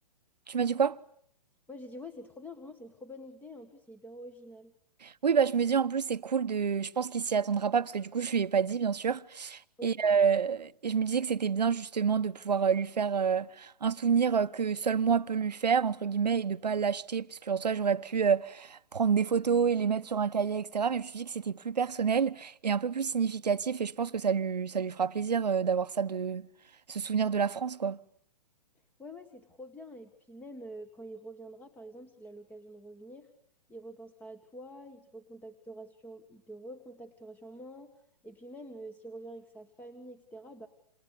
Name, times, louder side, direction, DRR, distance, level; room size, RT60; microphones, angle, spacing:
voice 1, 0.5-1.0 5.0-26.5 26.9-28.0, right 6 dB, 85° right, 1.1 m, -28 dB
voice 2, 1.7-4.7 9.8-10.0 29.0-33.3 33.7-37.9 38.2-40.7, equal, 10° left, 1.7 m, -46 dB
28.5 x 28.0 x 7.0 m
hypercardioid pair, 130°, 21 cm